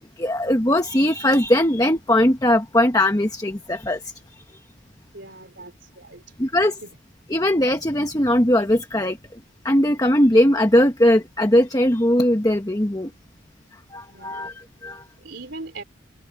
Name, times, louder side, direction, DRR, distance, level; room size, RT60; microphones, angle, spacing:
voice 1, 0.2-4.1 6.4-6.7 7.3-9.2 9.6-13.1 13.9-15.0, left 1 dB, 20° left, 1.1 m, -19 dB
voice 2, 5.1-6.5 6.8-6.9 14.1-14.5 15.2-15.8, right 3 dB, 60° right, 3.8 m, -40 dB
head